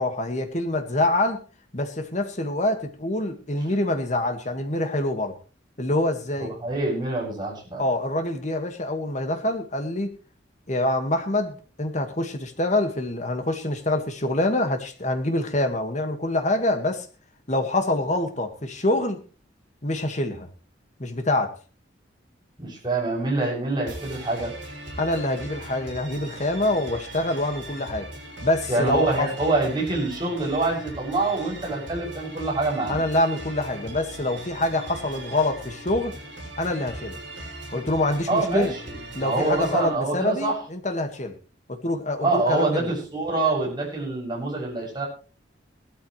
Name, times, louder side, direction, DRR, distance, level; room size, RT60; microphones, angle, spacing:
voice 1, 0.0-1.4 1.7-5.4 5.8-6.5 7.8-10.2 10.7-17.1 17.5-19.2 19.8-20.5 21.0-21.5 25.0-28.1 28.4-29.3 32.9-36.1 36.6-37.2 37.7-38.7 39.1-41.3 41.7-42.9, left 1 dB, 40° left, 6 dB, 1.9 m, -25 dB
voice 2, 6.4-7.8 22.6-24.5 28.7-33.0 38.3-40.6 42.2-45.1, right 2 dB, 25° right, -3 dB, 7.4 m, -25 dB
sound 1, 23.9-39.9, right 1 dB, 65° right, 6.6 m, -39 dB
18.0 x 13.0 x 3.3 m, 0.36 s
head